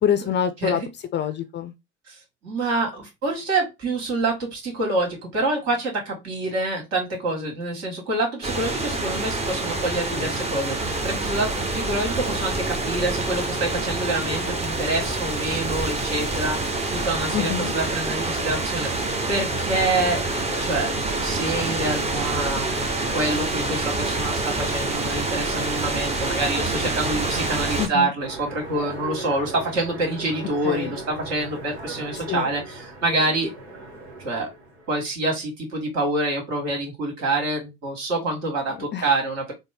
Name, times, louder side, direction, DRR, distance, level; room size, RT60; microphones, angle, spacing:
voice 1, 0.0-0.8 1.1-1.7 17.3-17.7 27.8-28.1 30.6-31.0 32.3-32.5 38.9-39.1, left 9 dB, 35° left, 0.5 m, -25 dB
voice 2, 2.4-16.6 16.9-18.9 19.3-20.3 20.5-20.9 21.2-22.7 23.1-33.5 34.2-34.5 34.9-39.5, right 2 dB, 50° right, 2.1 m, -26 dB
sound 1, 8.4-27.9, right 2 dB, 20° right, 0.9 m, -26 dB
Train, 28.2-35.1, right 2 dB, 90° right, 1.0 m, -38 dB
3.5 x 2.1 x 3.5 m
figure-of-eight pair, 60°, 32 cm